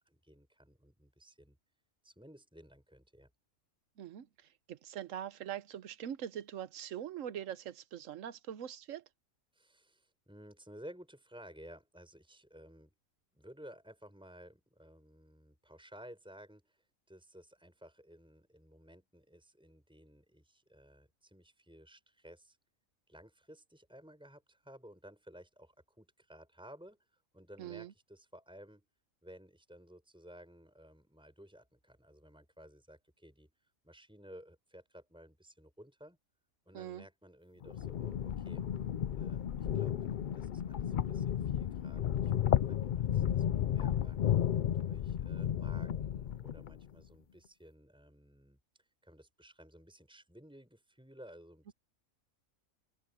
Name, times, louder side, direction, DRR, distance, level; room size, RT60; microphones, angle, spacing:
voice 1, 0.0-1.6 2.0-3.3 9.5-12.9 13.3-22.6 23.1-28.8 29.2-33.5 33.8-36.2 36.7-38.7 39.2-42.3 42.7-44.2 44.8-51.7, equal, 5° right, 5.9 m, -56 dB
voice 2, 4.7-9.0 27.6-27.9 36.7-37.0, right 10 dB, 70° right, 1.2 m, -42 dB
sound 1, 37.6-46.8, left 10 dB, 75° left, 0.4 m, -33 dB
open air
omnidirectional pair, 1.4 m